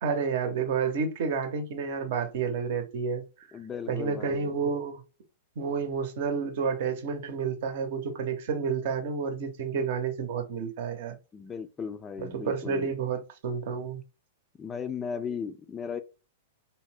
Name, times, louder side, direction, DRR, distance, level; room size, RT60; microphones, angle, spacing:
voice 1, 0.0-3.2 3.9-5.0 5.6-11.2 12.2-14.0, right 5 dB, 65° right, 0.7 m, -30 dB
voice 2, 3.5-4.5 11.3-12.9 14.6-16.0, left 6 dB, 20° left, 0.3 m, -36 dB
2.7 x 2.0 x 3.2 m
hypercardioid pair, 120°, 0 cm